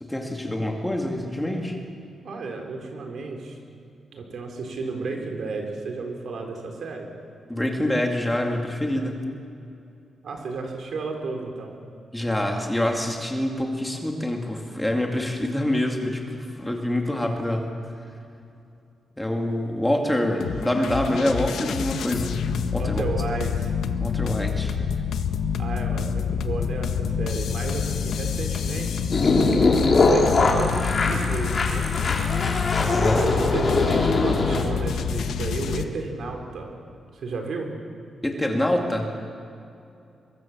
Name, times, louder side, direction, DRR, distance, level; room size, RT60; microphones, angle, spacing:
voice 1, 0.0-1.8 7.5-9.2 12.1-17.7 19.2-22.4 22.7-23.0 24.0-24.7 32.9-33.2 38.2-39.1, left 1 dB, 5° left, 2 dB, 2.3 m, -26 dB
voice 2, 2.2-3.6 4.1-7.1 10.2-11.8 21.2-21.3 22.8-23.7 25.6-29.1 29.8-31.9 33.1-36.7 37.1-37.7, right 3 dB, 55° right, 3 dB, 4.0 m, -32 dB
sound 1, 20.4-35.9, left 7 dB, 80° left, 1.2 m, -27 dB
sound 2, 29.1-34.6, left 3 dB, 35° left, 3.0 m, -22 dB
24.0 x 23.0 x 7.4 m, 2.6 s
wide cardioid pair, 170°, 0 cm